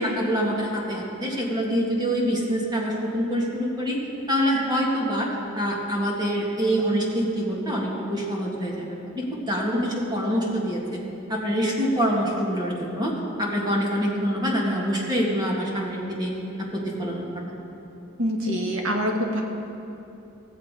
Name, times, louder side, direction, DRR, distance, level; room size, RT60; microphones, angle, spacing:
voice 1, 0.0-4.0 4.3-11.0 11.3-16.3 16.6-17.4, equal, 20° right, -2 dB, 1.7 m, -25 dB
voice 2, 18.2-19.4, equal, 70° right, 1 dB, 1.5 m, -25 dB
16.5 x 7.4 x 4.8 m, 2.9 s
head